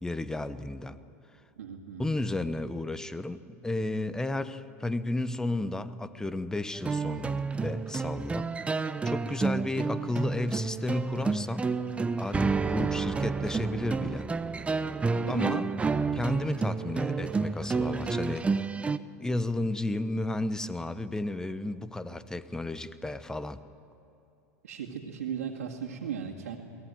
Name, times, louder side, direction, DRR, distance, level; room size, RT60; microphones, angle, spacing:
voice 1, 0.0-1.0 2.0-8.5 9.0-11.7 12.2-14.3 15.3-15.6 16.1-18.5 19.2-23.6, left 2 dB, 10° left, 13 dB, 1.0 m, -33 dB
voice 2, 1.6-2.1 9.3-9.6 15.1-15.7 24.6-26.6, right 8 dB, 90° right, -3 dB, 2.2 m, -37 dB
sound 1, 6.7-19.0, right 4 dB, 15° right, 0.7 m, -30 dB
22.5 x 18.0 x 9.2 m, 2.8 s
hypercardioid pair, 105°, 8 cm